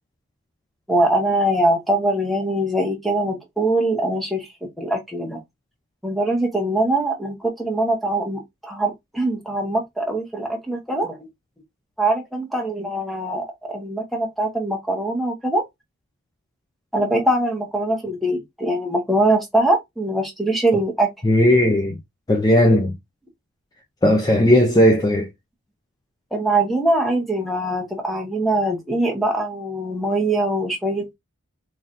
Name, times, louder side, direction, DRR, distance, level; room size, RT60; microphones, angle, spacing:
voice 1, 0.9-4.5 4.8-5.4 6.0-11.2 12.0-15.6 16.9-21.1 26.3-31.1, right 1 dB, ahead, 0.9 m, -22 dB
voice 2, 21.2-22.0 22.3-22.9 24.0-25.3, left 1 dB, 15° left, 0.4 m, -16 dB
3.9 x 3.2 x 2.4 m
head